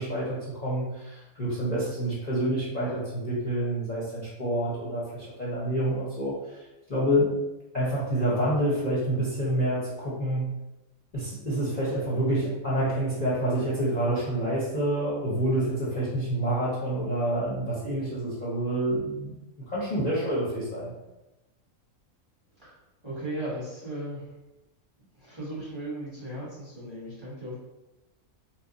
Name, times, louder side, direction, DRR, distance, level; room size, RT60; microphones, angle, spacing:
voice 1, 0.0-6.6 6.9-7.3 7.7-10.5 11.1-19.4 19.7-20.9, right 1 dB, 40° left, -8 dB, 0.7 m, -28 dB
voice 2, 23.0-24.3 25.2-27.6, right 1 dB, 20° right, -8 dB, 0.9 m, -36 dB
3.0 x 2.0 x 3.8 m, 0.99 s
omnidirectional pair, 1.6 m